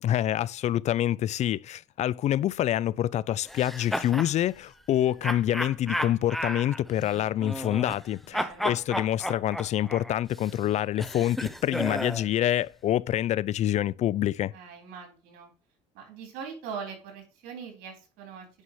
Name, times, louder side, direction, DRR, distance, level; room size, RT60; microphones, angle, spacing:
voice 1, 0.0-14.5, left 12 dB, 45° left, 0.4 m, -26 dB
sound 1, 3.5-4.3 5.2-8.1 8.3-12.3, equal, ahead, 0.7 m, -33 dB
voice 2, 8.3-8.8 14.5-15.5 15.9-18.5, right 6 dB, 75° right, 3.9 m, -41 dB
9.7 x 5.5 x 3.1 m
supercardioid pair, 95°, 16 cm